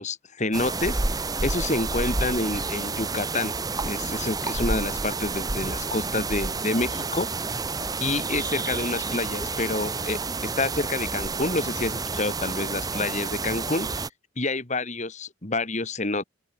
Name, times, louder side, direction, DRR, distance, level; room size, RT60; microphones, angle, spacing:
voice 1, 0.0-3.5 3.8-7.3 8.0-14.0 14.4-16.2, left 2 dB, 35° left, 2.1 m, -28 dB
sound 1, 0.5-14.1, right 3 dB, 20° right, 1.0 m, -29 dB
open air
head